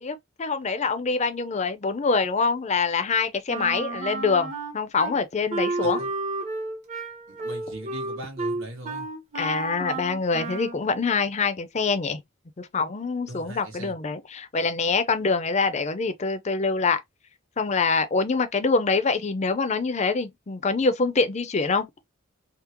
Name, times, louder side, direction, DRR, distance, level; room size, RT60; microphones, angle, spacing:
voice 1, 0.0-6.0 9.3-12.2 12.6-17.0 17.6-21.9, left 4 dB, 35° left, 0.5 m, -25 dB
Wind instrument woodwind instrument, 3.5-5.1 5.5-10.8, right 3 dB, 35° right, 0.7 m, -32 dB
voice 2, 5.8-6.1 7.3-9.1 13.3-13.9, right 1 dB, 90° right, 1.4 m, -40 dB
3.5 x 2.0 x 2.9 m
head